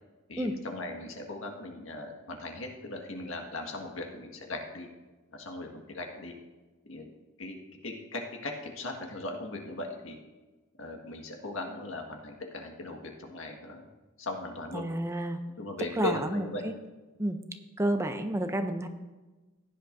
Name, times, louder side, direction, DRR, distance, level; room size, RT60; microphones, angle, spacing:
voice 1, 0.3-4.9 5.3-6.3 6.9-7.1 7.4-7.6 7.8-10.2 10.8-13.9 14.2-14.8 15.6-16.6, left 2 dB, 75° left, 2 dB, 1.7 m, -38 dB
voice 2, 14.7-15.4 16.0-16.7 17.2-17.4 17.8-18.9, right 1 dB, 15° right, 7 dB, 0.5 m, -30 dB
15.5 x 10.0 x 2.6 m, 1.2 s
head